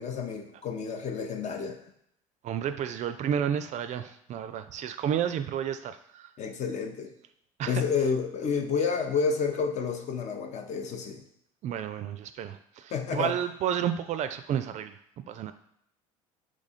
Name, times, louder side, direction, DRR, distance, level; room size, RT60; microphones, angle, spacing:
voice 1, 0.0-1.8 6.4-7.1 7.7-11.2 12.9-13.3, left 5 dB, 40° left, 6 dB, 0.7 m, -30 dB
voice 2, 2.4-6.3 7.6-7.8 11.6-14.9 15.3-15.5, right 9 dB, 45° right, 10 dB, 0.4 m, -31 dB
3.6 x 3.1 x 4.1 m, 0.74 s
hypercardioid pair, 70°, 17 cm